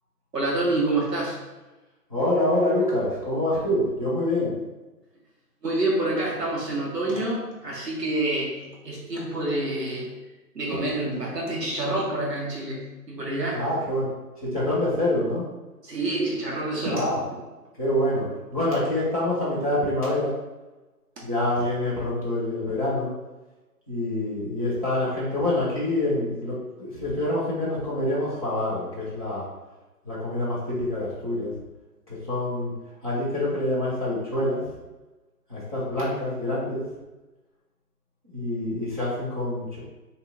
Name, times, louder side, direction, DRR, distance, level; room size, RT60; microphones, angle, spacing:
voice 1, 0.3-1.4 5.6-10.2 10.5-13.6 15.8-17.1, right 2 dB, 90° right, -4 dB, 1.3 m, -27 dB
voice 2, 2.1-4.5 13.5-14.1 14.4-15.5 16.9-17.2 17.8-20.3 21.2-23.1 23.9-29.5 30.0-31.5 32.1-32.7 33.0-34.6 35.5-36.8 38.2-39.8, left 1 dB, 25° right, -9 dB, 0.5 m, -26 dB
2.8 x 2.2 x 3.6 m, 1.1 s
figure-of-eight pair, 150°, 47 cm